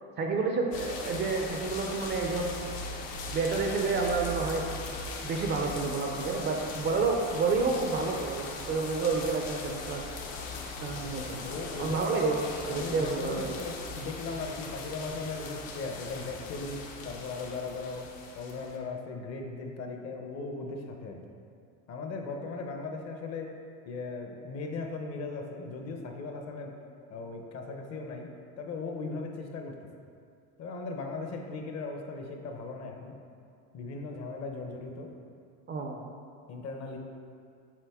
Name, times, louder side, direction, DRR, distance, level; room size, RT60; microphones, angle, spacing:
voice 1, 0.2-2.5 3.3-10.0 10.8-11.4 11.8-13.5 35.7-36.0, right 4 dB, 30° right, 2 dB, 0.4 m, -30 dB
sound 1, 0.7-18.8, left 3 dB, 70° left, 1.0 m, -39 dB
voice 2, 11.0-12.3 12.7-18.1 18.3-21.2 21.9-23.6 23.9-26.8 27.1-29.9 30.6-33.2 33.7-35.1 36.5-37.0, left 3 dB, 40° left, 3 dB, 0.7 m, -38 dB
7.5 x 4.1 x 3.5 m, 2.4 s
supercardioid pair, 125°, 39 cm